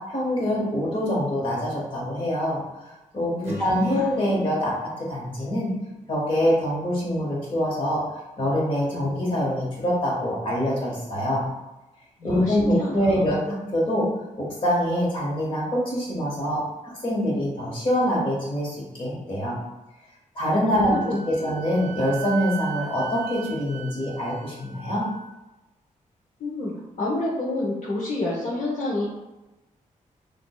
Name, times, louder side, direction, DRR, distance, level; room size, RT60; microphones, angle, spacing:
voice 1, 0.1-2.6 3.1-3.3 3.6-4.7 5.0-5.7 6.1-8.0 8.4-11.4 12.2-14.1 14.4-16.6 17.0-19.6 20.3-25.1, equal, 40° left, -4 dB, 1.4 m, -24 dB
voice 2, 3.3-4.1 8.9-9.1 12.2-13.4 20.7-21.5 26.4-26.7 27.0-29.1, left 2 dB, 60° left, -5 dB, 0.9 m, -29 dB
Strum, 3.4-7.5, right 1 dB, 20° right, 1.4 m, -45 dB
Wind instrument woodwind instrument, 20.9-25.3, right 10 dB, 65° right, 0.4 m, -38 dB
6.0 x 2.6 x 2.3 m, 1.0 s
wide cardioid pair, 150°, 14 cm